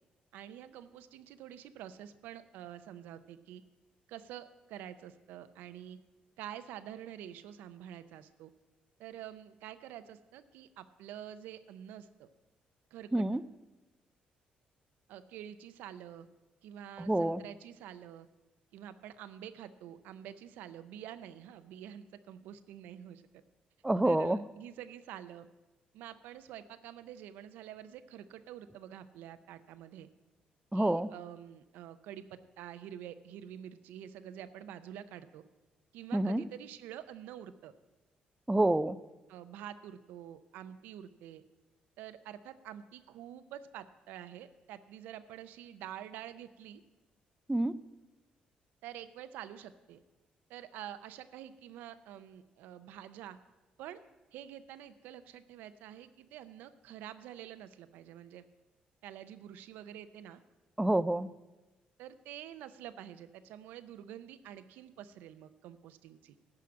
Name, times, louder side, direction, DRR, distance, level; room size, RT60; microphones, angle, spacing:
voice 1, 0.3-3.6 4.1-6.0 6.4-8.5 9.0-12.3 12.9-13.2 15.1-16.3 16.6-18.3 18.7-23.2 24.0-25.5 25.9-30.1 30.7-35.4 35.9-37.7 39.3-41.4 42.0-46.8 48.8-50.0 50.5-53.4 53.8-54.0 54.3-58.4 59.0-60.4 62.0-66.3, right 10 dB, 90° right, 12 dB, 0.6 m, -47 dB
voice 2, 17.0-17.4 23.8-24.4 30.7-31.1 36.1-36.4 38.5-39.0 47.5-47.8 60.8-61.3, right 1 dB, 10° right, 14 dB, 0.4 m, -28 dB
12.0 x 4.9 x 8.5 m, 1.1 s
cardioid pair, 95°, 3 cm